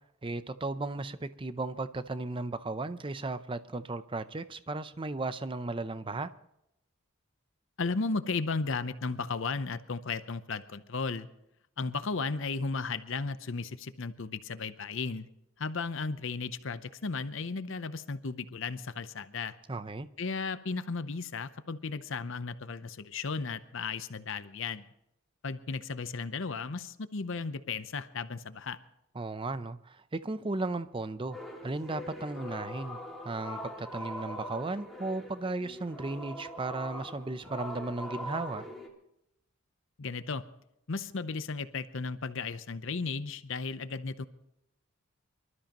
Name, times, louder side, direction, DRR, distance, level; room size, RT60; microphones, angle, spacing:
voice 1, 0.2-6.3 19.7-20.1 29.2-33.0 33.2-38.6, right 2 dB, 25° right, 0.5 m, -35 dB
voice 2, 7.8-11.3 11.8-15.3 15.6-19.6 20.2-24.8 25.4-28.8 40.0-40.4 40.9-44.2, left 4 dB, 60° left, 0.7 m, -35 dB
sound 1, 31.3-38.9, left 1 dB, ahead, 2.4 m, -42 dB
25.5 x 13.0 x 3.0 m
head